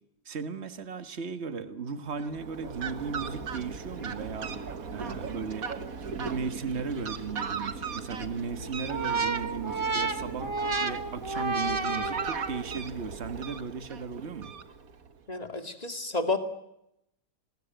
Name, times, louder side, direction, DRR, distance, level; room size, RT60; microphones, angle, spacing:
voice 1, 0.2-4.5 4.9-5.7 6.2-10.5 10.8-14.5, right 5 dB, 40° right, 10 dB, 1.7 m, -36 dB
Fowl, 2.1-15.1, right 5 dB, 55° right, 1.8 m, -38 dB
sound 1, 8.9-12.8, right 3 dB, 20° right, 0.9 m, -31 dB
voice 2, 15.3-16.4, left 3 dB, 25° left, 7 dB, 2.3 m, -30 dB
28.0 x 20.5 x 9.2 m, 0.82 s
omnidirectional pair, 1.8 m